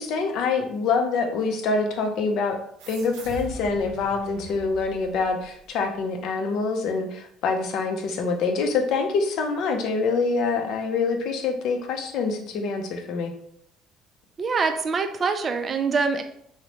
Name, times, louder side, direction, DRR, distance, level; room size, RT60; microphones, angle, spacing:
voice 1, 0.0-2.6 2.9-13.3, left 4 dB, 65° left, 5 dB, 0.5 m, -25 dB
sound 1, 2.8-5.8, right 1 dB, 90° right, 0.5 m, -41 dB
voice 2, 14.4-16.2, right 4 dB, 35° right, 7 dB, 0.3 m, -24 dB
3.0 x 2.0 x 2.8 m, 0.70 s
cardioid pair, 110°, 0 cm